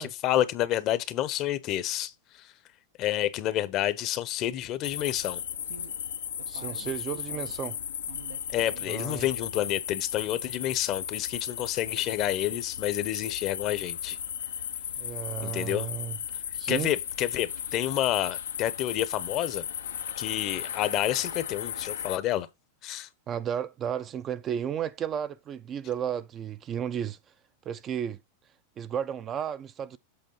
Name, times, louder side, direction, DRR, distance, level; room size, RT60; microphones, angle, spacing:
voice 1, 0.0-2.1 3.0-5.4 8.5-14.2 15.4-15.9 16.7-19.6 20.2-22.5 22.8-23.1, left 13 dB, 40° left, 0.7 m, -29 dB
sound 1, 4.8-22.2, left 9 dB, 90° left, 0.6 m, -35 dB
sound 2, 5.6-5.9 6.3-7.6 8.1-9.1 9.4-9.9 10.2-10.3 10.6-10.7, right 7 dB, 90° right, 0.9 m, -48 dB
voice 2, 6.5-7.8 8.9-9.3 15.0-16.2 16.5-16.9 23.3-27.2 27.7-28.2 28.8-30.0, right 9 dB, 30° right, 0.5 m, -33 dB
7.9 x 3.4 x 5.4 m
hypercardioid pair, 125°, 0 cm